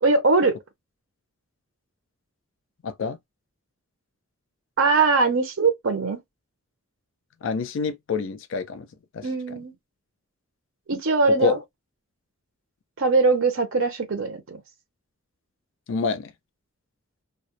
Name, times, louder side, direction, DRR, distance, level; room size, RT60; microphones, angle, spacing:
voice 1, 0.0-0.5 4.8-6.2 9.2-9.7 10.9-11.6 13.0-14.6, right 3 dB, 65° right, 0.7 m, -21 dB
voice 2, 2.8-3.2 7.4-8.9 9.1-9.2 11.4-11.6 15.9-16.3, left 4 dB, 60° left, 0.4 m, -27 dB
2.3 x 2.0 x 2.8 m
head